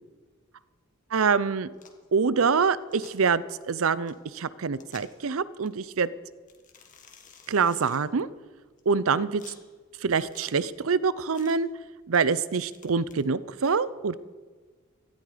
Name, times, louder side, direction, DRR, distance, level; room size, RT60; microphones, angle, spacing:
voice 1, 1.1-1.7 2.1-6.1 7.5-8.3 8.9-9.4 10.0-11.7 12.1-14.2, right 5 dB, 70° right, 17 dB, 0.6 m, -25 dB
sound 1, 1.7-2.1 2.8-3.1 4.1-4.2 4.7-5.2 5.6-5.7 6.5-8.0 8.8-9.6 10.1-10.5 11.3-11.5 12.1-13.2, left 6 dB, 40° left, 1.7 m, -52 dB
17.5 x 13.5 x 5.0 m, 1.4 s
head